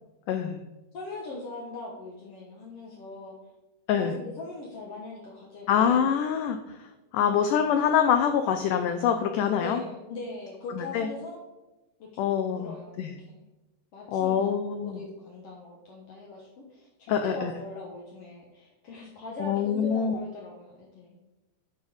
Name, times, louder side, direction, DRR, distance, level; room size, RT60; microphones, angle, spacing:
voice 1, 0.3-0.6 3.9-4.2 5.7-6.6 7.1-9.8 10.8-11.1 12.2-13.1 14.1-15.0 17.1-17.5 19.4-20.2, left 8 dB, 85° left, 7 dB, 1.8 m, -25 dB
voice 2, 0.9-3.4 4.0-6.1 9.6-11.4 12.0-12.9 13.3-13.4 13.9-21.2, left 2 dB, 65° left, -3 dB, 1.5 m, -41 dB
9.2 x 4.4 x 6.2 m, 1.1 s
omnidirectional pair, 4.3 m